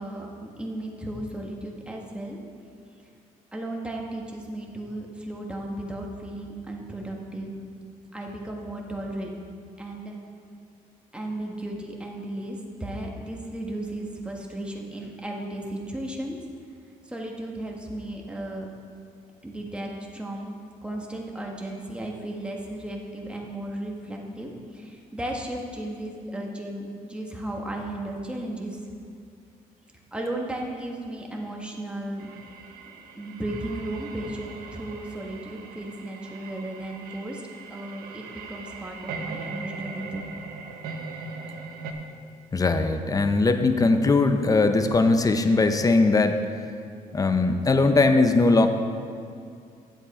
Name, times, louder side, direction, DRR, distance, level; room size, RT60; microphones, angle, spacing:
voice 1, 0.0-2.4 3.5-7.5 8.1-9.3 9.8-10.2 11.1-16.4 17.0-18.7 19.4-20.5 20.8-28.8 30.1-32.3 33.1-37.4 37.7-40.3, right 1 dB, 5° right, -1 dB, 1.5 m, -35 dB
sound 1, 32.2-41.9, right 4 dB, 85° right, 0.9 m, -40 dB
voice 2, 42.5-46.4 47.1-48.7, left 3 dB, 25° left, 8 dB, 0.7 m, -20 dB
10.0 x 7.9 x 4.3 m, 2.4 s
cardioid pair, 90°, 15 cm